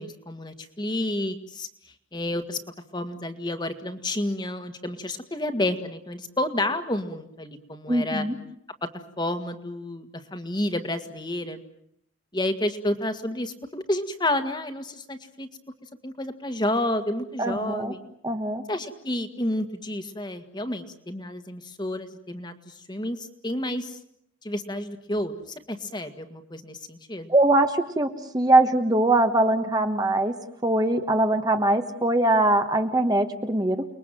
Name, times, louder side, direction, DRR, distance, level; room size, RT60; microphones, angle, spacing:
voice 1, 0.0-1.7 2.1-2.6 2.9-8.3 9.2-11.6 12.3-15.5 16.0-18.0 18.7-24.0 24.4-25.3 25.7-27.3, left 1 dB, 20° left, 7 dB, 1.8 m, -30 dB
voice 2, 7.9-8.3 17.4-17.9 18.2-18.6 27.3-30.3 30.6-33.8, right 2 dB, 20° right, 6 dB, 1.3 m, -22 dB
29.5 x 21.5 x 7.7 m, 0.73 s
head